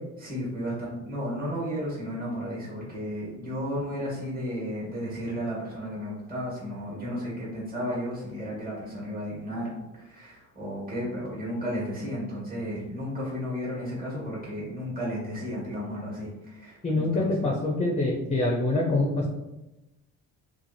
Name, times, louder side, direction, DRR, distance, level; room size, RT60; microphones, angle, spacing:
voice 1, 0.2-17.5, equal, 20° right, -5 dB, 1.4 m, -33 dB
voice 2, 16.8-19.3, left 2 dB, 15° left, 0 dB, 0.5 m, -25 dB
2.6 x 2.5 x 2.6 m, 0.98 s
supercardioid pair, 60°, 40 cm